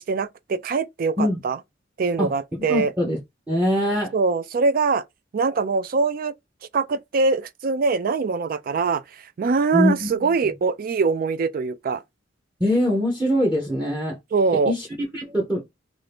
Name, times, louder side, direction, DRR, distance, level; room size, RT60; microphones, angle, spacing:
voice 1, 0.0-1.6 2.0-2.9 4.1-5.0 5.3-6.3 6.7-9.0 9.4-12.0 14.3-14.7, right 4 dB, 50° right, 0.3 m, -23 dB
voice 2, 2.7-3.2 3.5-4.1 9.7-10.1 12.6-14.2 14.6-15.6, left 1 dB, 10° right, 0.7 m, -22 dB
2.6 x 2.4 x 3.3 m
head